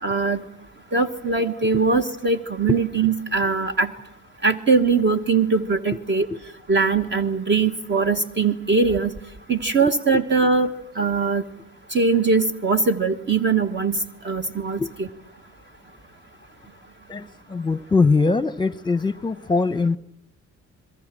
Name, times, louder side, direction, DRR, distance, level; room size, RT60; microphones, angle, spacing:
voice 1, 0.0-0.4 0.9-3.9 4.4-6.3 6.7-9.1 9.5-10.7 11.0-11.4 11.9-14.0 14.2-15.1, right 4 dB, 35° right, 7 dB, 1.4 m, -21 dB
voice 2, 17.5-20.0, left 4 dB, 15° left, 18 dB, 0.9 m, -21 dB
28.0 x 22.0 x 7.6 m, 0.76 s
cardioid pair, 90°, 30 cm